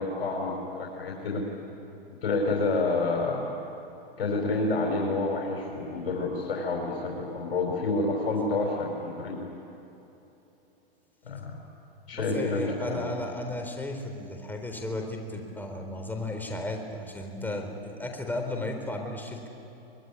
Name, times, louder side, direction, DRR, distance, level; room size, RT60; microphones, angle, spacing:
voice 1, 0.0-1.4 2.2-3.5 4.2-9.4 11.3-11.5 12.1-13.0, left 3 dB, 90° left, -1 dB, 4.9 m, -28 dB
voice 2, 12.1-19.5, left 1 dB, 5° left, 3 dB, 4.1 m, -34 dB
24.5 x 22.0 x 10.0 m, 3.0 s
hypercardioid pair, 125°, 30 cm